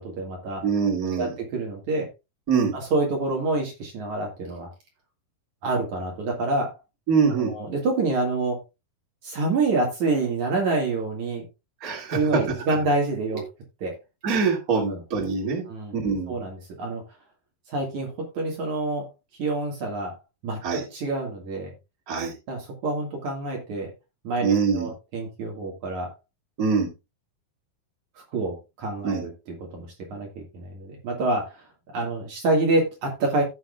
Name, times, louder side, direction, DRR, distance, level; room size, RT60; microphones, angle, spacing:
voice 1, 0.0-0.6 1.1-2.1 2.7-4.7 5.6-6.7 7.3-8.6 9.2-11.5 12.1-13.5 13.8-13.9 14.9-15.0 15.7-16.0 16.3-17.0 17.7-19.1 19.4-20.1 20.4-21.7 22.5-23.9 24.2-26.1 28.3-29.3 29.7-31.5 31.9-33.4, right 2 dB, 55° right, 0 dB, 3.2 m, -27 dB
voice 2, 0.6-1.3 2.5-2.7 7.1-7.5 11.8-12.2 14.2-15.6 15.9-16.4 20.6-20.8 22.1-22.3 24.4-24.9 26.6-26.9 29.0-29.2, right 5 dB, 25° right, 0 dB, 2.5 m, -23 dB
16.0 x 6.3 x 2.4 m, 0.26 s
omnidirectional pair, 4.2 m